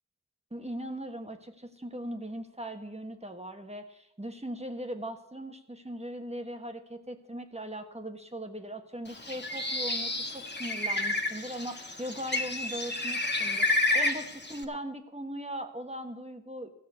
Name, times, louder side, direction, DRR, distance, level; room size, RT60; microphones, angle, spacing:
voice 1, 0.5-16.7, right 1 dB, 20° right, 5 dB, 1.4 m, -39 dB
Bird, 9.1-14.6, left 2 dB, 35° left, 1.4 m, -30 dB
14.5 x 6.2 x 8.3 m, 0.82 s
wide cardioid pair, 40°, 31 cm